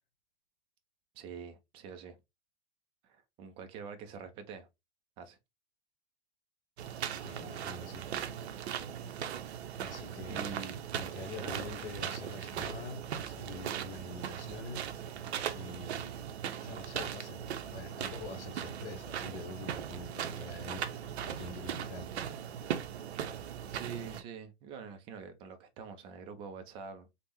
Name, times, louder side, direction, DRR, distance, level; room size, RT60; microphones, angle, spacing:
voice 1, 1.2-2.2 3.0-4.7 5.2-5.4 10.3-10.8 11.4-11.7 23.7-27.1, right 6 dB, 15° right, 0.3 m, -45 dB
sound 1, 6.8-24.2, right 9 dB, 70° right, 0.6 m, -39 dB
voice 2, 7.2-8.1 9.8-10.6 10.9-14.9 15.5-22.1, left 3 dB, 65° left, 0.9 m, -46 dB
3.4 x 2.1 x 2.9 m
hypercardioid pair, 120°, 33 cm